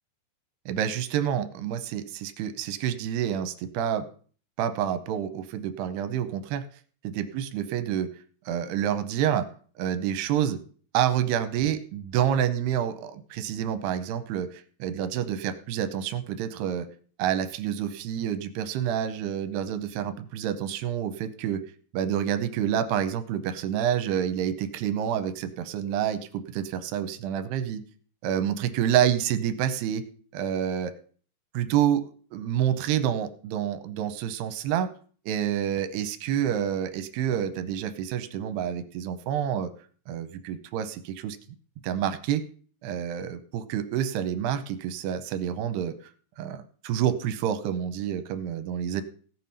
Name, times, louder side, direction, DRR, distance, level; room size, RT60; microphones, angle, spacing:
voice 1, 0.7-4.1 4.6-6.6 7.0-8.1 8.5-9.5 9.8-10.6 10.9-16.9 17.2-21.6 21.9-27.8 28.2-30.0 30.3-30.9 31.5-34.9 35.3-39.7 40.1-41.4 41.8-42.4 42.8-45.9 46.4-49.0, right 9 dB, 80° right, 10 dB, 2.6 m, -28 dB
16.5 x 6.1 x 5.5 m, 0.44 s
omnidirectional pair, 5.2 m